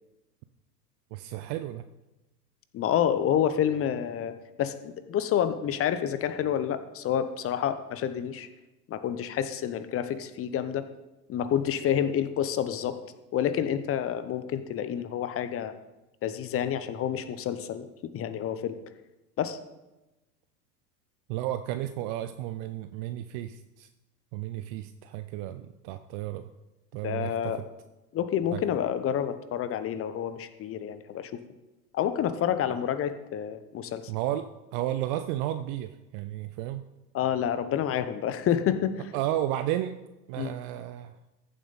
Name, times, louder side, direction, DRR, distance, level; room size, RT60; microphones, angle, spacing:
voice 1, 1.1-1.9 21.3-23.9 24.3-26.5 26.9-27.6 28.5-28.6 34.1-36.8 39.1-40.0 40.3-41.2, right 13 dB, 35° right, 11 dB, 0.4 m, -33 dB
voice 2, 2.7-8.5 8.9-10.8 11.3-13.0 13.3-15.7 16.2-17.9 18.1-18.8 19.4-19.6 27.0-27.6 28.1-31.3 31.9-34.0 37.1-38.9 40.4-40.5, left 9 dB, 25° left, 11 dB, 0.8 m, -28 dB
14.5 x 7.6 x 4.1 m, 1.0 s
hypercardioid pair, 90°, 49 cm